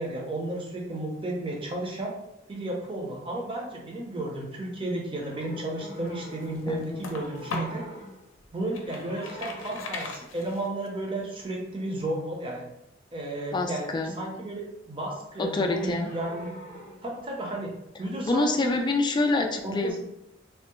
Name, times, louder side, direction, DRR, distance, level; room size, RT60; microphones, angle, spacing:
voice 1, 0.0-2.1 2.5-7.8 8.5-12.6 13.1-13.9 14.2-16.6 17.0-18.8 19.6-20.0, right 1 dB, 25° right, -1 dB, 0.6 m, -33 dB
sound 1, 5.1-6.8 7.1-8.4 8.7-10.1 15.6-17.7 18.7-18.9, equal, 45° left, 0.7 m, -45 dB
sound 2, 5.7-7.9 8.4-10.9, left 2 dB, 80° left, 0.5 m, -37 dB
voice 2, 6.7-7.1 13.5-14.2 15.4-16.1 18.2-20.0, left 2 dB, 25° left, 4 dB, 0.3 m, -26 dB
3.3 x 2.0 x 3.0 m, 0.86 s
head